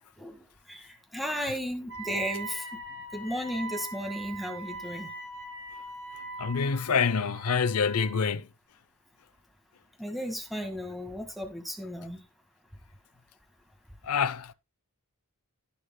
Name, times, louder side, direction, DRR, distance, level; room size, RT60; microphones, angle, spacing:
voice 1, 0.2-2.8 3.1-5.1 10.0-12.2, equal, ahead, 1.8 m, -35 dB
Wind instrument woodwind instrument, 1.9-8.3, right 3 dB, 60° right, 5.7 m, -41 dB
voice 2, 6.4-8.5 14.0-14.5, left 6 dB, 80° left, 0.6 m, -26 dB
19.0 x 6.6 x 2.2 m
head